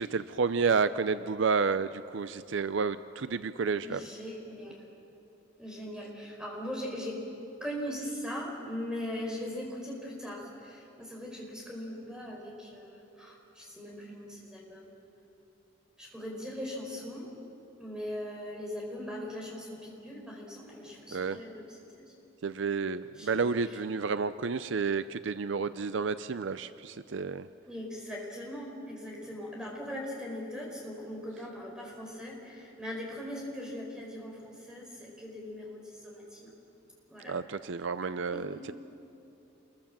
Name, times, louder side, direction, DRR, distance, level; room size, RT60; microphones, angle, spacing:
voice 1, 0.0-4.1 21.1-21.4 22.4-27.5 37.3-38.7, right 5 dB, 60° right, 13 dB, 0.5 m, -30 dB
voice 2, 3.8-4.8 5.6-7.2 7.6-14.9 16.0-17.3 17.8-22.1 23.1-23.8 27.7-36.5 37.1-37.4 38.3-38.7, left 1 dB, 5° right, -2 dB, 5.0 m, -40 dB
28.0 x 22.0 x 7.4 m, 2.9 s
head